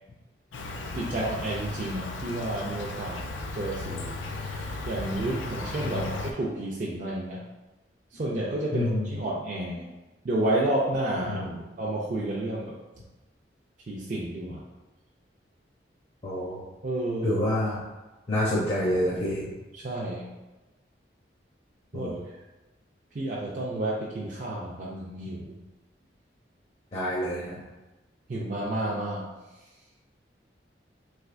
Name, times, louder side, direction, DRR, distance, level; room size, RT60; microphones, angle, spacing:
Insect, 0.5-6.3, left 2 dB, 90° left, 0.4 m, -35 dB
voice 1, 0.9-3.2 3.5-7.4 8.1-9.9 10.2-11.5 11.8-12.8 13.9-14.6 16.8-17.4 19.7-20.3 21.9-22.1 23.1-25.6 28.3-29.3, right 1 dB, 45° right, -5 dB, 0.4 m, -31 dB
voice 2, 8.7-9.1 11.3-11.6 16.2-16.6 17.2-17.8 18.3-19.4 21.9-22.2 26.9-27.6, left 1 dB, 35° left, -6 dB, 0.5 m, -28 dB
3.3 x 3.0 x 2.5 m, 1.1 s
head